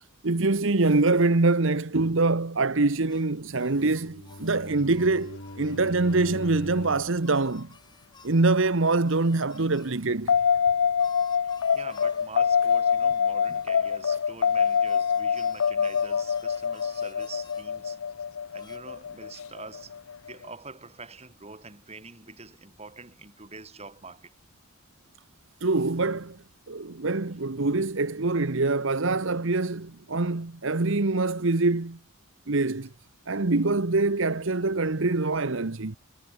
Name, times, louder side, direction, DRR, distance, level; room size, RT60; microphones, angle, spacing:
voice 1, 0.2-7.7 8.2-10.4 25.6-26.4 26.7-32.0 32.5-32.9 33.3-36.0, right 3 dB, 60° right, 1.1 m, -24 dB
sound 1, 3.1-10.0 11.0-17.7 18.6-18.8, left 4 dB, 20° left, 6.0 m, -55 dB
Bowed string instrument, 3.6-7.2, left 1 dB, 55° left, 5.0 m, -41 dB
sound 2, 10.3-20.4, left 7 dB, 75° left, 0.5 m, -25 dB
voice 2, 11.3-18.0 18.5-20.0 20.3-24.4, right 4 dB, 30° right, 4.3 m, -45 dB
head